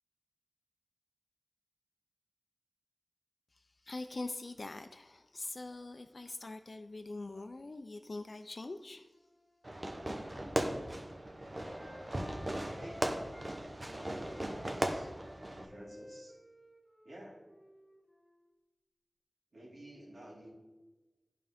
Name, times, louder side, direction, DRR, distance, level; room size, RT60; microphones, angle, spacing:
voice 1, 3.5-9.1, left 2 dB, 65° left, 8 dB, 0.4 m, -43 dB
Wind instrument woodwind instrument, 9.1-13.6 13.9-18.5, left 1 dB, 25° left, 1.1 m, -55 dB
Fireworks, 9.6-15.7, right 1 dB, 40° right, 0.8 m, -38 dB
voice 2, 12.6-13.1 13.9-15.1 15.5-16.4 17.0-17.4 19.5-20.5, equal, 85° right, -4 dB, 1.9 m, -52 dB
11.0 x 3.7 x 3.5 m, 1.1 s
wide cardioid pair, 45°, 0 cm